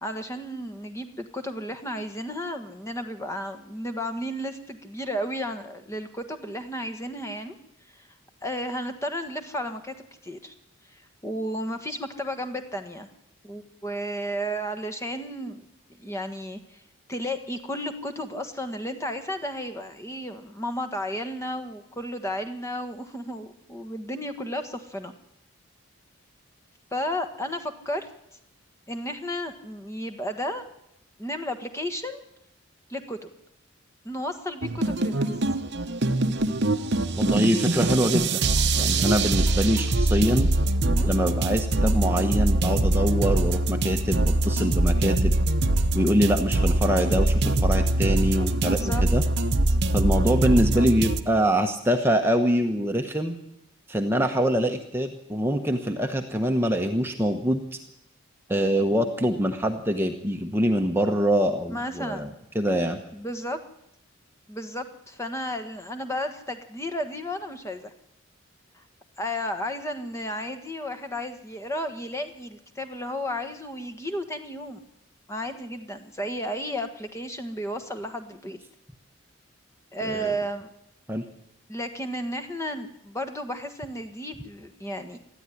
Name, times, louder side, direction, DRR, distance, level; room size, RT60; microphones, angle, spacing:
voice 1, 0.0-7.6 8.0-8.1 8.4-9.9 10.2-10.5 10.9-13.1 13.4-15.7 16.0-16.8 17.1-25.1 26.9-28.1 28.9-30.6 31.2-32.2 32.9-33.3 34.0-35.3 40.8-41.1 48.5-49.0 61.7-62.3 63.1-63.6 64.5-67.9 68.7-68.8 69.2-74.8 75.3-78.6 79.9-80.7 81.7-85.2, equal, 15° left, 8 dB, 1.4 m, -33 dB
sound 1, 34.6-51.2, right 2 dB, 50° right, 1.0 m, -23 dB
voice 2, 37.2-38.4 38.8-40.5 41.1-45.3 45.9-49.2 49.9-53.3 53.9-57.6 58.5-62.3 62.5-63.0 80.0-80.3 81.1-81.2, equal, 10° right, 4 dB, 1.1 m, -24 dB
20.0 x 13.5 x 10.0 m, 0.84 s
head